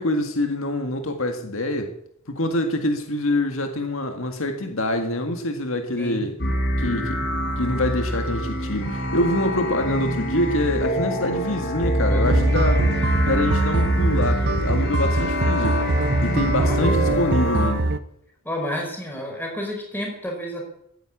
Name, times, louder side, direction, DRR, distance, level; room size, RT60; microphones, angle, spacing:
voice 1, 0.0-1.9 2.3-6.4 6.8-7.2 7.6-12.8 13.2-15.8 16.2-17.9, left 1 dB, 70° left, 5 dB, 1.8 m, -25 dB
voice 2, 6.0-6.3 12.1-12.5 16.6-17.3 18.4-20.7, equal, 10° left, 0 dB, 5.0 m, -31 dB
sound 1, 6.4-17.7, equal, 55° left, 5.0 m, -25 dB
sound 2, 12.2-18.0, right 2 dB, 50° right, 0.8 m, -23 dB
15.0 x 9.8 x 8.6 m, 0.75 s
head